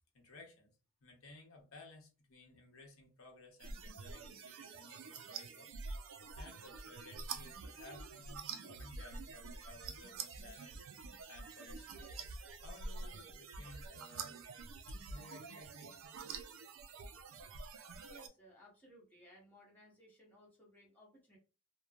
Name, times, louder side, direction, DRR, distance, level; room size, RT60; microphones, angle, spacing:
voice 1, 0.1-0.7 1.0-6.0 6.3-10.8 11.3-14.4 14.9-16.0, left 2 dB, 85° left, 1 dB, 0.9 m, -57 dB
sound 1, 3.6-18.3, right 4 dB, 70° right, 0.4 m, -47 dB
voice 2, 18.1-21.4, equal, 10° left, -5 dB, 0.9 m, -61 dB
3.0 x 2.1 x 2.3 m, 0.34 s
head